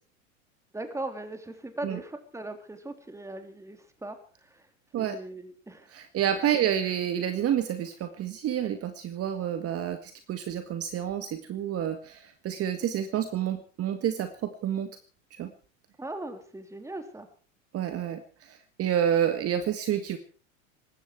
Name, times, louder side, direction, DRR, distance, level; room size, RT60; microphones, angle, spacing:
voice 1, 0.7-4.7 5.0-5.9 12.8-12.9 16.0-17.3, right 2 dB, 5° right, 7 dB, 3.3 m, -39 dB
voice 2, 5.9-14.9 15.4-15.5 17.7-20.2, right 10 dB, 35° right, 8 dB, 1.8 m, -29 dB
19.5 x 15.5 x 4.7 m, 0.41 s
hypercardioid pair, 85°, 40 cm